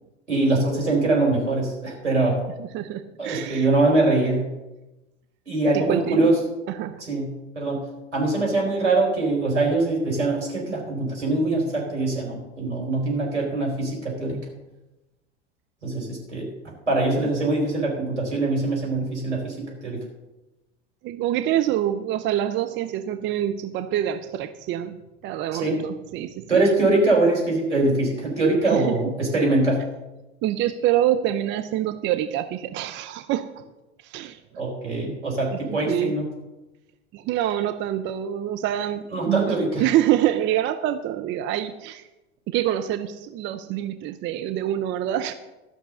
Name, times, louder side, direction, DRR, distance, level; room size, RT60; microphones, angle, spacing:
voice 1, 0.3-2.4 3.2-4.4 5.5-6.3 7.0-7.8 8.1-14.4 15.8-16.5 16.9-20.0 25.5-25.8 26.5-29.8 34.6-36.2 39.1-39.8, right 2 dB, 80° right, -3 dB, 4.2 m, -23 dB
voice 2, 2.6-3.7 5.7-6.3 6.7-7.0 21.0-25.0 25.2-26.7 28.6-29.0 30.4-33.5 34.0-34.4 35.5-36.2 37.1-42.1 42.5-45.3, right 12 dB, 35° right, 9 dB, 0.6 m, -26 dB
13.5 x 6.1 x 6.7 m, 1.0 s
figure-of-eight pair, 75°, 35 cm